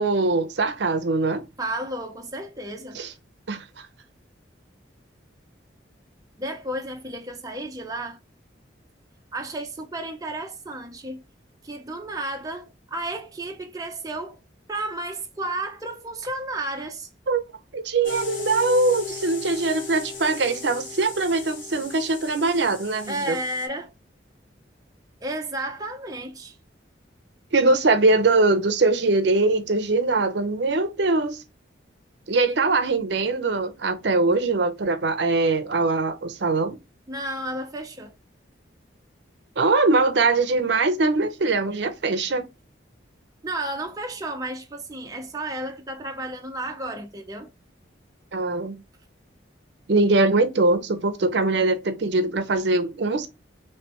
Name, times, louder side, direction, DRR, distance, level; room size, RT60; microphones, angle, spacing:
voice 1, 0.0-1.4 2.9-3.1 3.5-3.9 17.3-17.4 17.7-23.4 27.5-31.4 32.3-36.8 39.6-42.4 48.3-48.8 49.9-53.3, right 3 dB, 65° right, 0.6 m, -22 dB
voice 2, 1.6-3.0 6.4-8.2 9.3-11.2 11.6-14.4 14.7-17.1 23.1-23.9 25.2-26.6 37.1-38.1 43.4-47.5, right 1 dB, 20° right, 0.5 m, -32 dB
sound 1, 18.0-23.7, left 5 dB, 85° left, 1.3 m, -37 dB
3.2 x 3.0 x 2.9 m
head